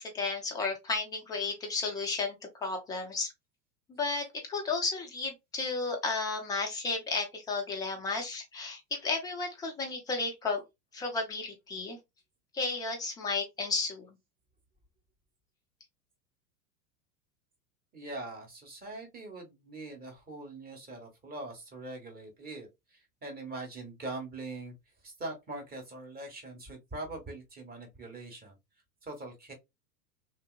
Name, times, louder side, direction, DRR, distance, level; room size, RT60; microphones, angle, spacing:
voice 1, 0.0-3.3 3.9-10.6 10.9-12.0 12.5-14.1, left 3 dB, 10° left, 0.3 m, -33 dB
voice 2, 17.9-24.7 25.0-28.6 29.0-29.5, right 2 dB, 20° right, 1.3 m, -42 dB
3.1 x 2.7 x 2.4 m
figure-of-eight pair, 90°, 47 cm